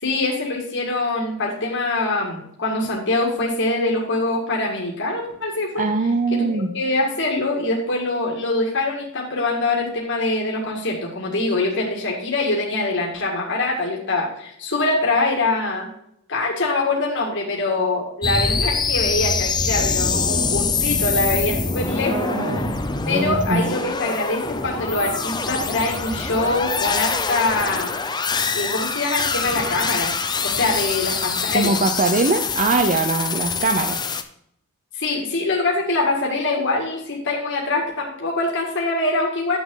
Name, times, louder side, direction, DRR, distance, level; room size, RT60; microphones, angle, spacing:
voice 1, 0.0-5.9 6.3-15.9 16.3-22.3 23.1-28.0 28.5-30.1 30.4-31.8 34.9-39.6, left 2 dB, 60° left, -2 dB, 2.0 m, -24 dB
voice 2, 5.8-6.7 22.1-22.8 23.1-23.6 31.5-34.0, right 3 dB, 35° right, 7 dB, 0.6 m, -22 dB
sound 1, 18.2-34.2, left 4 dB, 20° left, 0.6 m, -24 dB
9.7 x 7.4 x 3.8 m, 0.72 s
head